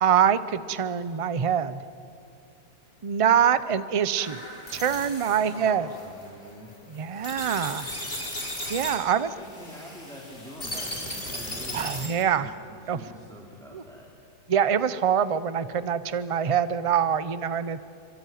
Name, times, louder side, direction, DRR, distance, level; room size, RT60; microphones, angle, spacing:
voice 1, 0.0-1.8 3.0-4.4 4.7-5.9 6.9-7.9 8.7-9.3 11.7-12.5 12.9-13.0 13.7-13.8 14.5-17.8, right 8 dB, 45° right, 14 dB, 0.4 m, -24 dB
sound 1, 4.2-12.3, left 1 dB, 35° left, 4.3 m, -37 dB
voice 2, 5.4-6.7 9.2-14.1, equal, ahead, -3 dB, 3.5 m, -45 dB
25.5 x 24.5 x 9.4 m, 2.6 s
omnidirectional pair, 1.7 m